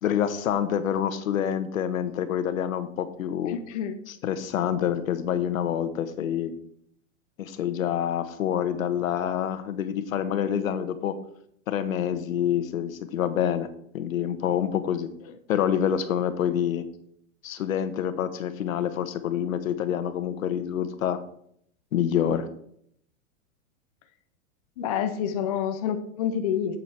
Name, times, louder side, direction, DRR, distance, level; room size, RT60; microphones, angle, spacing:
voice 1, 0.0-3.6 4.2-6.5 7.4-11.1 11.7-13.7 13.9-15.1 15.5-16.8 17.4-21.2 21.9-22.5, left 9 dB, 75° left, 11 dB, 1.2 m, -27 dB
voice 2, 3.5-4.0 15.3-15.4 24.8-26.8, left 8 dB, 25° left, 7 dB, 0.5 m, -28 dB
7.8 x 7.7 x 4.3 m, 0.68 s
hypercardioid pair, 160°, 41 cm